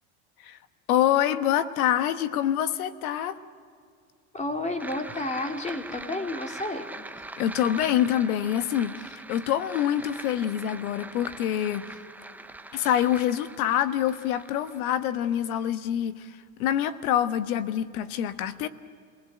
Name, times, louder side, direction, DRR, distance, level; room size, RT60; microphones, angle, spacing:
voice 1, 0.9-3.4 7.4-12.0 12.7-18.7, left 10 dB, 80° left, 12 dB, 1.4 m, -26 dB
voice 2, 4.3-6.9, left 2 dB, 15° left, 4 dB, 2.6 m, -31 dB
sound 1, 4.8-15.7, right 2 dB, 5° right, 0.7 m, -42 dB
28.5 x 19.0 x 8.0 m, 2.2 s
supercardioid pair, 115°, 42 cm